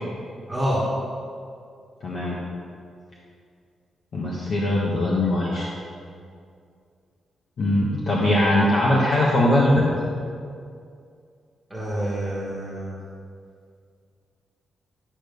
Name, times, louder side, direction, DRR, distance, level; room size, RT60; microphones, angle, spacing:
voice 1, 0.5-0.8 11.7-13.0, equal, 5° right, -7 dB, 1.6 m, -27 dB
voice 2, 2.0-2.4 4.1-5.7 7.6-9.9, left 1 dB, 45° left, -4 dB, 1.3 m, -21 dB
11.5 x 6.7 x 5.3 m, 2.3 s
wide cardioid pair, 170°, 0 cm